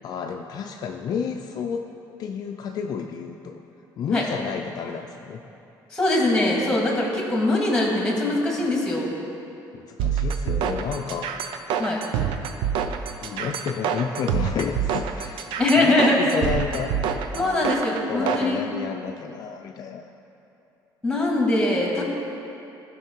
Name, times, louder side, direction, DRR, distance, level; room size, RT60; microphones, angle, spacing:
voice 1, 0.0-1.8 2.2-3.6 4.0-5.4 9.7-11.3 13.2-15.5 15.8-17.0 17.3-17.8 18.1-20.0, left 6 dB, 50° left, 3 dB, 0.5 m, -31 dB
voice 2, 5.9-9.2 11.8-12.0 15.6-16.3 17.3-18.6 21.0-22.0, left 2 dB, 10° left, -2 dB, 2.1 m, -22 dB
sound 1, 10.0-18.5, right 7 dB, 80° right, 0.6 m, -26 dB
15.0 x 5.7 x 4.6 m, 2.9 s
cardioid pair, 125°, 8 cm